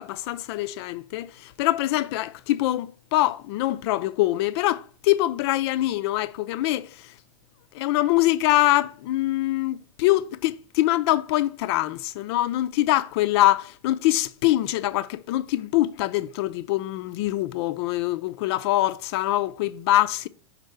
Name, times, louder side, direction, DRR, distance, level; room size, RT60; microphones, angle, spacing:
voice 1, 0.0-7.1 7.7-20.3, left 15 dB, 50° left, 0.5 m, -24 dB
5.4 x 4.4 x 4.3 m
figure-of-eight pair, 90°, 17 cm